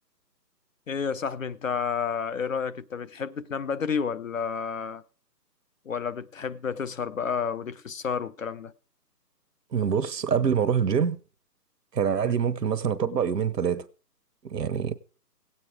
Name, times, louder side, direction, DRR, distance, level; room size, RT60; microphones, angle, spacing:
voice 1, 0.9-5.0 5.9-8.7 12.2-12.4, left 6 dB, 50° left, 0.7 m, -30 dB
voice 2, 9.7-11.2 11.9-13.8 14.4-15.0, right 7 dB, 75° right, 1.1 m, -25 dB
16.5 x 8.7 x 4.6 m
hypercardioid pair, 165°, 49 cm